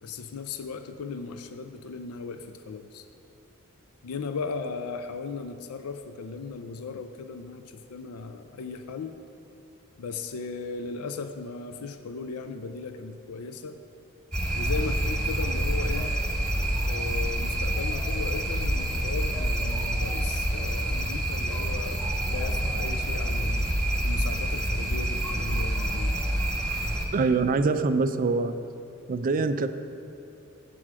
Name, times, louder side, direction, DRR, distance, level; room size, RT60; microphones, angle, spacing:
voice 1, 0.0-3.1 4.0-9.2 10.0-13.8 14.5-16.1 16.8-23.7 24.0-26.2, left 4 dB, 85° left, 8 dB, 0.4 m, -37 dB
sound 1, 14.3-27.1, right 1 dB, 5° left, 1.4 m, -27 dB
voice 2, 27.1-28.5 29.1-29.7, right 4 dB, 40° right, 11 dB, 0.3 m, -24 dB
7.6 x 4.8 x 7.3 m, 3.0 s
head